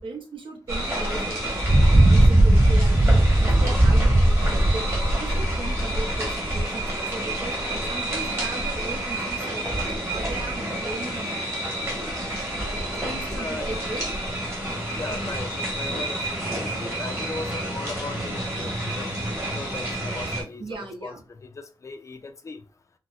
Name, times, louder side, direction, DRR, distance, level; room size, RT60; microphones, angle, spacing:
voice 1, 0.0-1.4 1.9-7.6 7.9-9.6 10.0-11.4 12.2-14.0 15.1-15.4 20.6-21.2, right 2 dB, 80° right, 0.8 m, -37 dB
sound 1, 0.7-20.4, right 1 dB, 30° right, 1.2 m, -23 dB
voice 2, 13.3-13.7 15.0-19.1 19.5-21.2 21.4-22.6, left 3 dB, 40° left, 0.4 m, -38 dB
3.9 x 2.0 x 2.4 m
wide cardioid pair, 150°, 8 cm